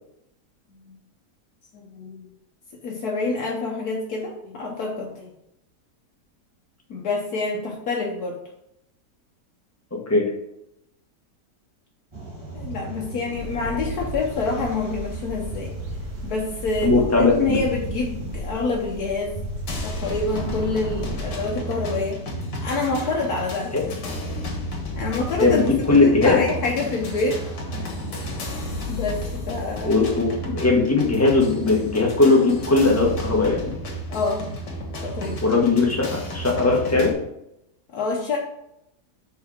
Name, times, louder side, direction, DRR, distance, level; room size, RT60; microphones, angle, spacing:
voice 1, 1.7-2.3 2.8-5.3 6.9-8.4 12.5-15.7 16.2-16.9 17.2-19.4 19.8-22.2 22.6-23.8 24.9-25.6 25.9-27.4 28.9-30.1 34.1-34.4 35.0-35.4 37.9-38.4, left 3 dB, 70° left, -1 dB, 1.4 m, -27 dB
sound 1, 12.1-28.8, right 2 dB, 20° right, 1.4 m, -37 dB
sound 2, 13.3-21.2, left 1 dB, 85° right, 1.5 m, -37 dB
voice 2, 16.8-17.6 25.4-26.4 29.8-33.6 35.4-37.1, left 3 dB, 10° left, -1 dB, 1.1 m, -19 dB
sound 3, 19.7-37.1, equal, 90° left, 2.0 m, -32 dB
4.7 x 4.7 x 5.8 m, 0.81 s
omnidirectional pair, 1.8 m